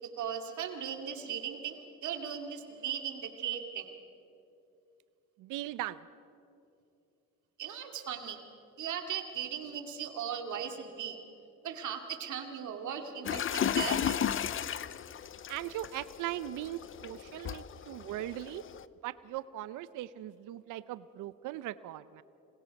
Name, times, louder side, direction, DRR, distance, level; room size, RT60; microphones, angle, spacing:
voice 1, 0.0-3.9 7.6-8.4 8.8-11.2 11.6-14.2, right 8 dB, 75° right, 4 dB, 2.4 m, -38 dB
voice 2, 5.4-6.1 15.5-18.6 19.0-22.2, right 14 dB, 90° right, 16 dB, 0.6 m, -39 dB
sound 1, 13.2-18.8, left 9 dB, 45° left, 0.6 m, -34 dB
26.5 x 21.5 x 5.2 m, 2.6 s
cardioid pair, 90°, 30 cm